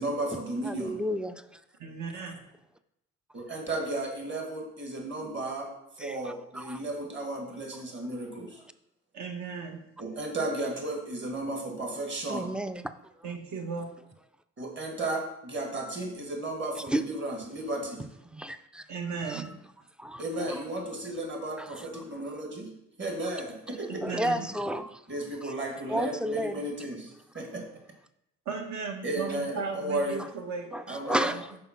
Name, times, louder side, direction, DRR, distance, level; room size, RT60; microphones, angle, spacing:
voice 1, 0.0-1.0 3.3-8.6 10.0-12.5 14.6-18.0 20.2-24.0 25.1-27.6 29.0-30.2 30.9-31.3, right 2 dB, 40° right, 1.8 m, -34 dB
voice 2, 0.6-1.6 6.0-6.8 12.3-13.1 16.9-17.0 18.3-18.9 19.3-19.5 20.0-20.2 20.5-20.6 21.6-22.0 24.0-25.0 25.4-25.5 25.9-26.6 30.2-30.3 30.7-31.5, equal, 5° right, 0.3 m, -32 dB
voice 3, 1.8-2.4 9.1-9.8 13.2-13.9 18.9-19.5 23.9-24.5 28.4-30.7, right 5 dB, 65° right, 1.3 m, -36 dB
5.6 x 4.4 x 5.8 m
cardioid pair, 90°, 30 cm